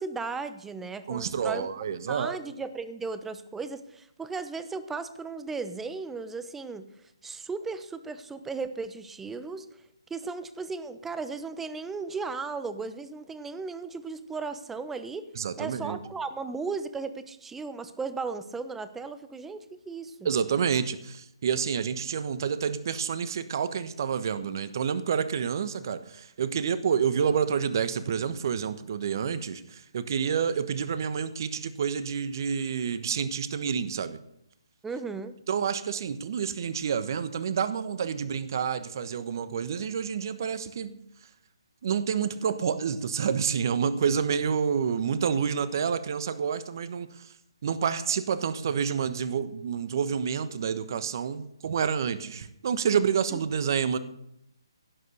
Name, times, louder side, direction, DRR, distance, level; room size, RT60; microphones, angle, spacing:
voice 1, 0.0-1.7 2.1-6.8 7.2-9.7 10.1-15.3 15.6-20.3 34.8-35.3 53.3-53.4, right 4 dB, 5° right, 11 dB, 1.0 m, -36 dB
voice 2, 1.1-2.4 15.4-16.0 20.2-34.2 35.5-40.9 41.8-47.3 47.6-54.0, right 7 dB, 45° right, 13 dB, 1.2 m, -28 dB
17.0 x 9.5 x 6.6 m, 0.77 s
figure-of-eight pair, 145°, 3 cm